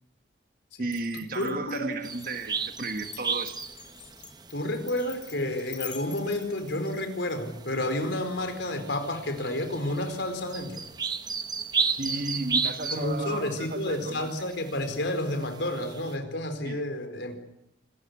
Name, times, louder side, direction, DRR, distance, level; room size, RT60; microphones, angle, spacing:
voice 1, 0.8-3.6 11.9-14.3 16.6-16.8, right 2 dB, 50° right, 1.5 m, -34 dB
Glass, 0.9-7.3, left 10 dB, 40° left, 3.4 m, -45 dB
voice 2, 1.3-1.9 4.5-10.8 12.9-17.4, left 1 dB, 70° left, 4.4 m, -30 dB
sound 1, 2.0-16.2, right 5 dB, 20° right, 0.9 m, -35 dB
26.0 x 15.0 x 9.9 m
head